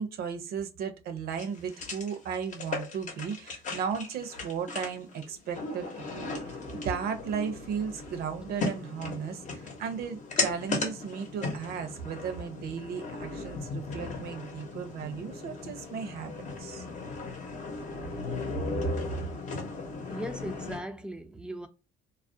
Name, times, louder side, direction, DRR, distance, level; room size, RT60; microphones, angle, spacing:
voice 1, 0.0-16.3 16.6-16.8 18.8-18.9, right 6 dB, 65° right, 0.6 m, -35 dB
sound 1, 1.3-20.8, left 3 dB, 45° left, 0.8 m, -37 dB
voice 2, 20.1-21.7, right 1 dB, 5° right, 0.4 m, -38 dB
2.4 x 2.1 x 2.5 m
cardioid pair, 110°, 17 cm